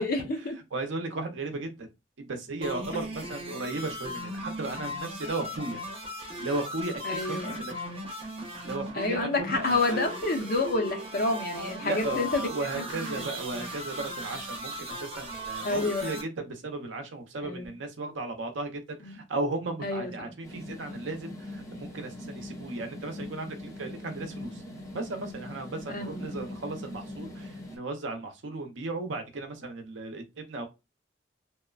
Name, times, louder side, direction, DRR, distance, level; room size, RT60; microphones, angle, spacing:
voice 1, 0.0-0.6 7.0-7.7 8.9-12.4 12.7-13.2 13.5-13.7 15.6-16.2 17.4-17.7 19.0-19.2 19.8-20.3 25.9-26.3, left 3 dB, 50° left, 0.6 m, -29 dB
voice 2, 0.7-1.9 2.2-5.8 6.4-7.7 8.6-10.1 11.8-24.6 24.9-30.7, right 2 dB, 75° right, 0.6 m, -35 dB
sound 1, 2.6-16.2, equal, 30° right, 0.7 m, -37 dB
sound 2, 20.4-27.8, left 1 dB, 15° left, 0.6 m, -41 dB
2.9 x 2.1 x 2.3 m
head